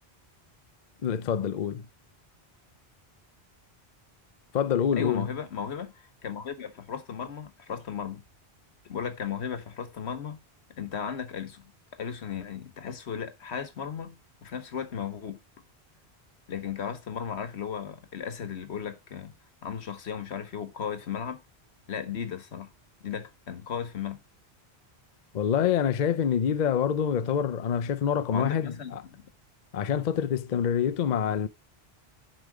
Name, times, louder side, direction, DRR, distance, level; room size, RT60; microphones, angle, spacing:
voice 1, 1.0-1.9 4.5-5.3 25.3-29.0 29.7-31.5, left 8 dB, 50° left, 0.6 m, -26 dB
voice 2, 4.9-5.9 6.2-8.2 8.8-10.4 10.8-11.7 12.0-15.4 16.5-19.3 19.6-21.4 21.9-22.7 23.0-24.2 28.3-29.2, left 7 dB, 85° left, 1.4 m, -35 dB
10.0 x 5.3 x 4.8 m
omnidirectional pair, 1.1 m